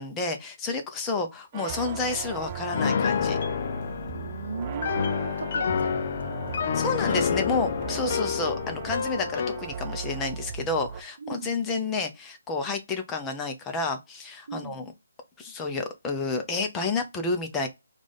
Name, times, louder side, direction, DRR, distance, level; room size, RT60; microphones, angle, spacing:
voice 1, 0.0-3.4 6.7-14.8 15.4-17.7, left 3 dB, 15° left, 0.7 m, -30 dB
sound 1, 1.5-11.0, right 7 dB, 30° right, 0.5 m, -38 dB
Piano, 2.7-9.7, left 7 dB, 45° left, 0.3 m, -28 dB
voice 2, 4.1-6.8 7.1-7.4 11.2-11.5 14.5-14.8, right 4 dB, 60° right, 0.8 m, -38 dB
4.8 x 2.5 x 3.8 m
figure-of-eight pair, 145°, 0 cm